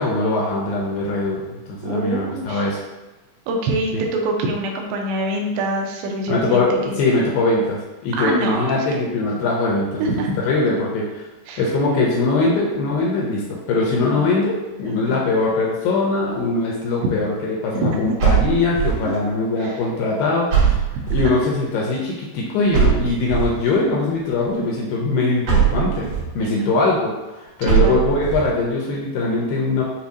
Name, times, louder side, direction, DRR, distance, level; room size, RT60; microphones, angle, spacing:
voice 1, 0.0-2.8 3.9-4.0 6.3-11.2 11.6-14.5 14.8-20.8 21.1-29.8, left 3 dB, 80° left, -3 dB, 2.2 m, -21 dB
voice 2, 1.8-2.7 3.5-6.9 8.1-9.1 10.0-10.4 11.5-11.6 14.0-14.3 14.8-15.2 17.7-18.0 19.6-19.8 21.2-21.4 26.4-26.7 27.6-28.0, right 2 dB, 85° right, 1 dB, 2.6 m, -25 dB
sound 1, 18.2-19.2 20.5-21.5 22.7-23.7 25.5-26.3 27.7-28.5, right 8 dB, 55° right, 2.3 m, -20 dB
7.1 x 2.4 x 2.7 m, 1.1 s
omnidirectional pair, 4.5 m